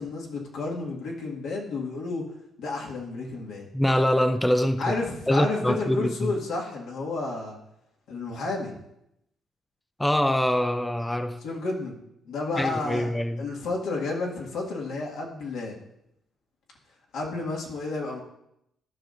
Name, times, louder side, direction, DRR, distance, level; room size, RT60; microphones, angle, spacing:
voice 1, 0.0-2.2 2.6-3.7 4.8-7.6 8.1-8.8 11.4-12.0 12.2-13.1 13.4-15.8 17.1-18.2, left 3 dB, 85° left, 1.9 m, -31 dB
voice 2, 3.7-4.9 5.3-6.3 10.0-11.4 12.6-13.5, equal, 10° left, 0.5 m, -24 dB
14.0 x 5.7 x 2.6 m
cardioid pair, 90°, 0 cm